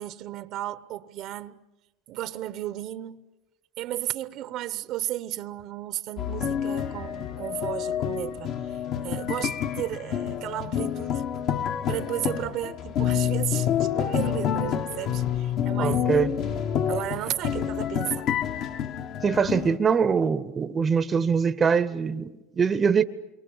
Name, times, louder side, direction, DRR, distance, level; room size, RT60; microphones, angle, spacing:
voice 1, 0.0-1.6 2.1-3.2 3.8-11.2 11.9-16.1 16.9-18.3, right 13 dB, 55° right, 0.8 m, -34 dB
sound 1, 6.2-19.8, left 9 dB, 50° left, 1.2 m, -28 dB
voice 2, 15.8-16.3 17.5-17.6 19.2-23.0, right 6 dB, 25° right, 0.8 m, -23 dB
29.0 x 23.5 x 7.1 m
supercardioid pair, 120°, 0 cm